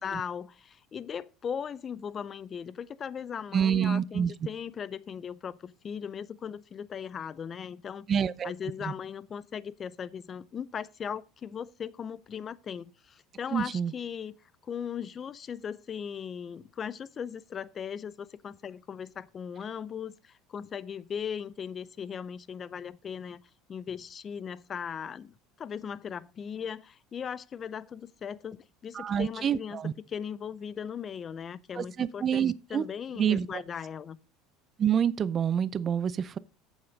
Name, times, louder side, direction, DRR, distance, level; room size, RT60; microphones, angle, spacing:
voice 1, 0.0-8.1 8.4-14.4 14.6-23.4 23.7-29.8 30.1-34.2, left 7 dB, 30° left, 0.5 m, -38 dB
voice 2, 3.5-4.3 8.1-8.5 8.8-8.9 13.5-13.9 28.9-29.9 31.8-32.8 33.1-33.5 34.8-36.4, right 8 dB, 30° right, 0.5 m, -27 dB
8.3 x 7.2 x 5.2 m
cardioid pair, 140°, 0 cm